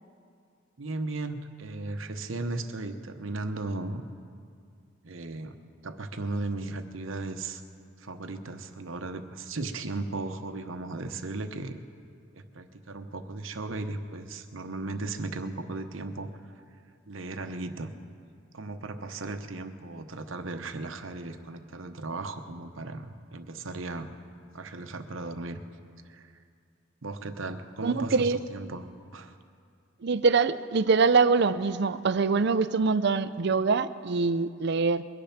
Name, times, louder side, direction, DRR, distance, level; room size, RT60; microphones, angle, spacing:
voice 1, 0.8-4.0 5.0-5.6 5.8-7.6 8.0-11.8 12.3-16.3 17.1-17.9 18.5-24.1 24.5-25.6 26.0-26.3 27.0-28.9 29.1-29.3, right 2 dB, 70° right, 8 dB, 0.9 m, -36 dB
voice 2, 27.8-28.4 30.0-35.0, right 4 dB, 55° right, 14 dB, 0.5 m, -24 dB
22.0 x 10.5 x 5.9 m, 2.2 s
head